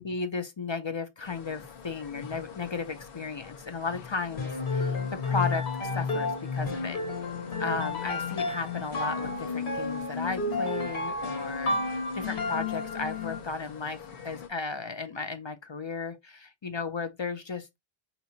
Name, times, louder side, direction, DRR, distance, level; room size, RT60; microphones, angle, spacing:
voice 1, 0.0-7.0 7.6-17.8, left 4 dB, 45° left, 0.4 m, -35 dB
sound 1, 1.2-14.5, left 7 dB, 60° left, 1.3 m, -46 dB
sound 2, 4.4-13.6, left 3 dB, 85° left, 1.6 m, -31 dB
5.5 x 2.8 x 2.7 m
omnidirectional pair, 1.1 m